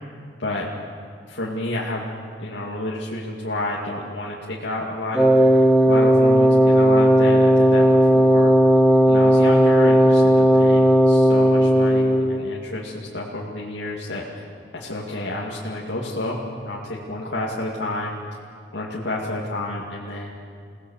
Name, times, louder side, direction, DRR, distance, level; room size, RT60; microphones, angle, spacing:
voice 1, 1.3-2.0 2.4-5.3 5.8-7.8 8.1-8.5 9.1-14.5 14.7-18.2 18.7-20.3, left 1 dB, 80° left, -4 dB, 2.3 m, -30 dB
Wind instrument woodwind instrument, 5.1-12.4, equal, 5° right, 1.1 m, -15 dB
28.5 x 18.5 x 7.2 m, 2.2 s
head